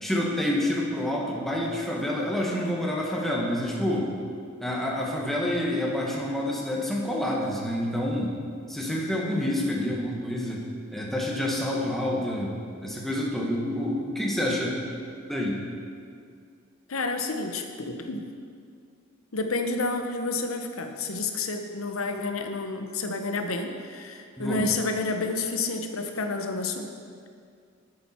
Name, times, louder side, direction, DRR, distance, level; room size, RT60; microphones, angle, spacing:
voice 1, 0.0-4.1 4.6-8.3 8.7-10.6 10.9-12.5 12.8-14.8 15.3-15.6 24.4-24.7, left 1 dB, ahead, -4 dB, 1.4 m, -28 dB
voice 2, 16.9-18.2 19.3-26.9, left 3 dB, 90° left, 5 dB, 0.9 m, -30 dB
10.5 x 8.8 x 4.4 m, 2.2 s
head